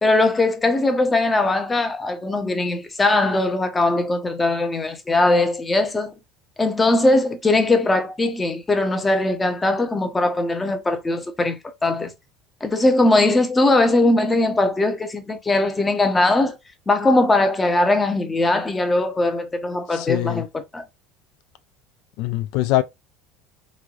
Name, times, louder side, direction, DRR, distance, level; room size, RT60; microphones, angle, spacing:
voice 1, 0.0-6.1 6.6-12.1 12.6-16.6 16.9-20.8, left 2 dB, 15° left, 0.6 m, -20 dB
voice 2, 19.9-20.5 22.2-22.8, left 16 dB, 65° left, 0.3 m, -22 dB
3.7 x 3.1 x 2.4 m
cardioid pair, 150°, 0 cm